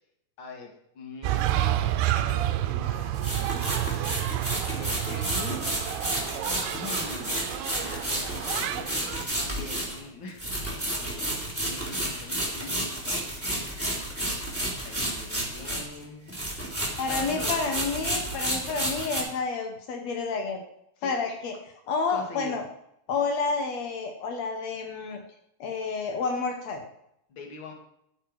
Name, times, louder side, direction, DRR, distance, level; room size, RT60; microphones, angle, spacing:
voice 1, 0.4-4.1 4.8-5.6 6.2-7.5 7.8-13.8 14.6-16.3 17.0-17.6 21.0-21.1 22.1-22.6 27.3-27.7, left 3 dB, 40° left, 2 dB, 1.9 m, -43 dB
sound 1, 1.2-9.2, right 13 dB, 80° right, 2.6 m, -29 dB
sound 2, 3.1-16.0 16.3-19.2, right 1 dB, 5° left, 2.5 m, -31 dB
voice 2, 17.0-20.6 21.0-22.6 23.1-25.2 25.6-26.8, left 4 dB, 85° left, 4 dB, 1.5 m, -30 dB
11.5 x 9.3 x 4.7 m, 0.77 s
omnidirectional pair, 4.8 m